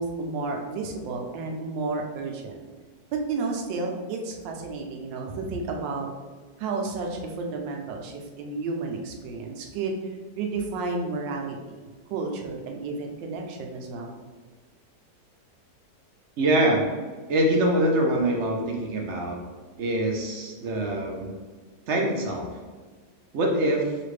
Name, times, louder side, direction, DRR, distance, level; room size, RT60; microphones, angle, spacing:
voice 1, 0.0-2.6 3.1-6.1 6.6-10.0 10.4-11.8 12.1-14.2, right 3 dB, 90° right, 2 dB, 1.3 m, -31 dB
voice 2, 16.4-16.8 17.3-19.4 19.8-21.3 21.9-22.5 23.3-24.0, right 1 dB, 65° right, 0 dB, 0.7 m, -24 dB
5.4 x 2.5 x 3.2 m, 1.4 s
omnidirectional pair, 1.9 m